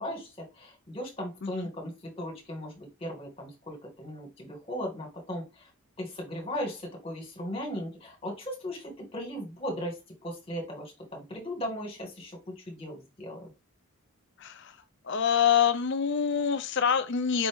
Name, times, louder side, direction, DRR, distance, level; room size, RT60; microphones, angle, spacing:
voice 1, 0.0-5.7 6.0-13.5, equal, 25° left, 1.7 m, -37 dB
voice 2, 14.4-14.8 15.0-17.5, left 7 dB, 55° left, 0.5 m, -26 dB
5.3 x 2.8 x 3.5 m
head